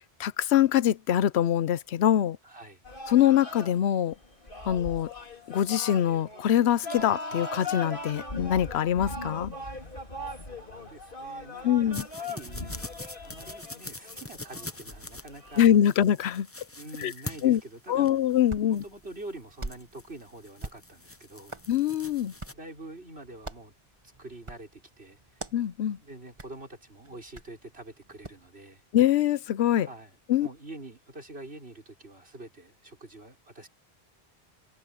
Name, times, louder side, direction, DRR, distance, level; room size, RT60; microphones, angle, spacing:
voice 1, 0.2-2.4 3.1-4.1 4.7-5.1 5.5-9.5 11.6-12.1 15.6-16.5 17.0-17.1 17.4-17.6 17.9-18.8 21.7-22.3 25.5-26.0 28.9-29.9 30.3-30.5, left 11 dB, 85° left, 0.9 m, -24 dB
voice 2, 2.4-2.8 10.1-12.9 13.2-15.7 16.8-18.1 18.5-21.5 22.5-23.7 24.0-25.4 26.0-28.8 29.8-33.7, right 2 dB, 75° right, 6.1 m, -46 dB
sound 1, 2.8-15.8, left 2 dB, 55° left, 4.1 m, -39 dB
sound 2, 11.9-22.5, left 2 dB, 15° left, 0.8 m, -44 dB
Hands, 18.1-28.5, right 2 dB, 30° right, 1.5 m, -46 dB
omnidirectional pair, 1.1 m